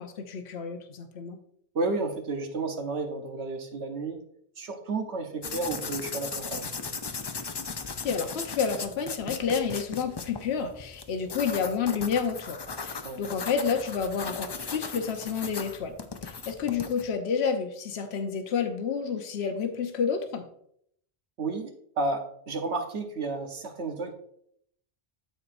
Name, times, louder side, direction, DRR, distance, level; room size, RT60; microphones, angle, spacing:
voice 1, 0.0-1.4 8.0-16.0 16.2-20.4, left 6 dB, 75° left, 6 dB, 1.1 m, -30 dB
voice 2, 1.7-4.2 4.6-6.7 13.0-13.3 21.4-24.1, right 3 dB, 85° right, 5 dB, 1.3 m, -32 dB
sound 1, 5.4-17.1, left 4 dB, 40° left, 0.4 m, -37 dB
12.5 x 4.6 x 2.5 m, 0.69 s
omnidirectional pair, 1.1 m